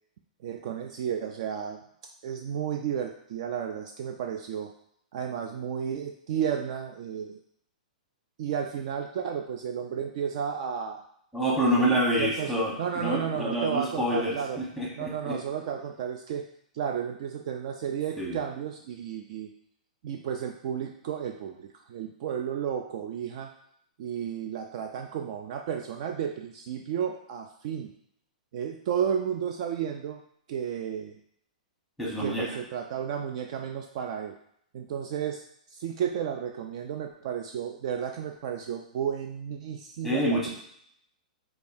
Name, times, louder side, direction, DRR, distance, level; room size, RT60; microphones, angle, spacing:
voice 1, 0.4-1.8 2.2-4.7 5.1-7.4 8.4-11.0 11.6-14.6 15.0-16.5 16.7-19.5 20.0-23.5 24.0-27.9 28.5-30.2 30.5-31.2 32.2-34.4 34.7-35.4 35.7-40.5, right 8 dB, 50° right, 4 dB, 0.3 m, -33 dB
voice 2, 11.3-15.4 18.2-18.4 32.0-32.5 40.0-40.5, equal, 5° right, -5 dB, 1.1 m, -27 dB
5.1 x 2.3 x 2.6 m, 0.71 s
hypercardioid pair, 150°, 4 cm